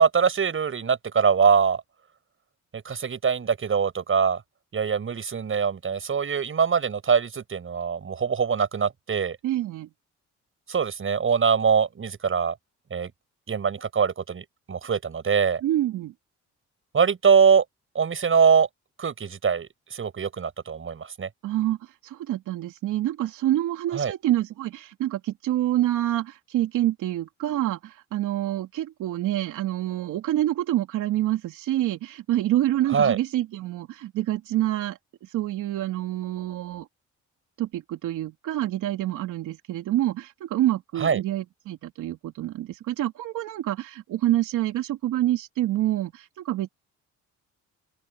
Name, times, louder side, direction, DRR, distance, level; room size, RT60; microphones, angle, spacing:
voice 1, 0.0-1.8 2.7-4.4 4.7-9.4 10.7-12.5 12.9-13.1 13.5-15.6 16.9-17.6 17.9-18.7 19.0-21.3 23.9-24.1 32.9-33.2 41.0-41.2, right 6 dB, 45° right, 7.5 m, -23 dB
voice 2, 9.4-9.9 15.6-16.1 21.4-36.9 37.6-46.7, right 14 dB, 90° right, 3.3 m, -27 dB
open air
cardioid pair, 90°, 30 cm